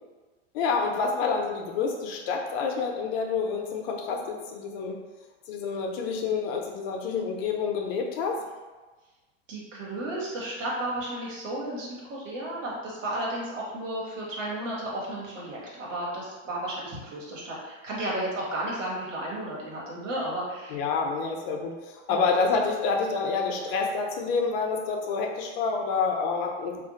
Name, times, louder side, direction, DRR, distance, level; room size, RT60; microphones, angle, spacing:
voice 1, 0.5-5.0 5.5-8.4 20.7-26.8, left 5 dB, 50° left, 2 dB, 0.6 m, -28 dB
voice 2, 9.5-20.8 22.1-22.3, right 1 dB, 85° right, -4 dB, 1.3 m, -33 dB
2.5 x 2.3 x 3.8 m, 1.3 s
hypercardioid pair, 110°, 37 cm